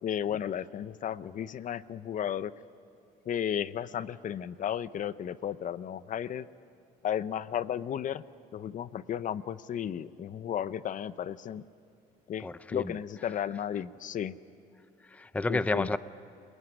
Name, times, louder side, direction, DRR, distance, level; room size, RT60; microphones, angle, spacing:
voice 1, 0.0-2.5 3.3-6.5 7.0-8.2 8.5-11.6 12.3-14.3 15.5-15.9, left 9 dB, 50° left, 15 dB, 0.7 m, -34 dB
voice 2, 12.4-12.9 15.0-16.0, left 2 dB, 10° left, 15 dB, 0.5 m, -31 dB
28.0 x 20.0 x 10.0 m, 2.6 s
cardioid pair, 110°, 17 cm